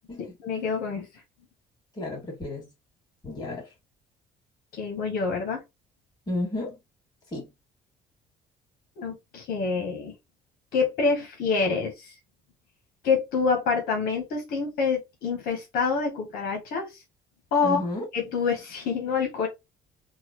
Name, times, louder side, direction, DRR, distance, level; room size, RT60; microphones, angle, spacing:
voice 1, 0.2-1.1 4.7-5.6 9.0-10.1 10.7-12.1 13.0-17.0 17.5-17.8 18.1-19.5, left 5 dB, 75° left, 1.2 m, -27 dB
voice 2, 2.0-2.7 3.2-3.7 6.3-6.8 7.3-7.5 17.6-18.1, left 2 dB, 25° left, 2.5 m, -32 dB
3.9 x 2.3 x 3.0 m
cardioid pair, 100°, 15 cm